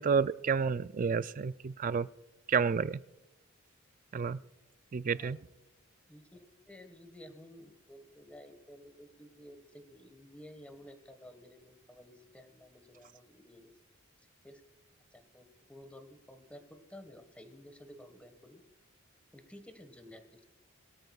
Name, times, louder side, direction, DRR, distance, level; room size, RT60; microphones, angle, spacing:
voice 1, 0.0-2.1 2.5-3.0 4.1-4.4 4.9-5.4, right 5 dB, 40° right, 15 dB, 0.4 m, -30 dB
voice 2, 5.1-5.4 6.1-13.7 14.4-14.6 15.1-18.6 19.3-20.4, left 1 dB, 5° left, 7 dB, 1.5 m, -53 dB
22.5 x 13.0 x 2.4 m, 0.97 s
head